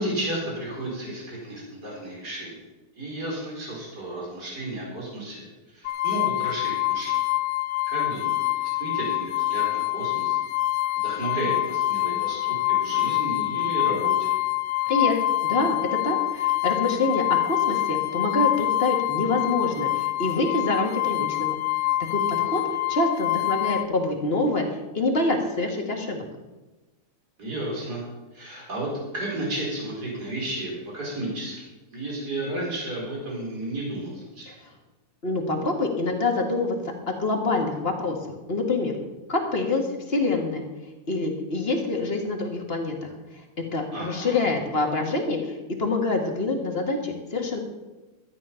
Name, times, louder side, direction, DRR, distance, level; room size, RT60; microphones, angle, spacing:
voice 1, 0.0-2.6 2.9-7.2 7.9-10.4 11.0-14.3 22.2-22.5 27.4-28.1 28.3-31.6 31.9-34.5 43.9-44.5, right 1 dB, 45° right, -3 dB, 4.7 m, -33 dB
sound 1, 5.9-23.9, left 16 dB, 80° left, 1.5 m, -25 dB
voice 2, 15.4-21.6 22.1-22.2 22.5-22.6 22.9-24.6 24.9-26.3 34.5-34.6 35.2-36.8 37.1-38.2 38.5-38.9 39.3-39.8 40.1-40.7 41.1-43.1 43.7-47.6, left 2 dB, 30° left, 2 dB, 1.8 m, -26 dB
13.0 x 9.6 x 5.7 m, 1.1 s
omnidirectional pair, 2.3 m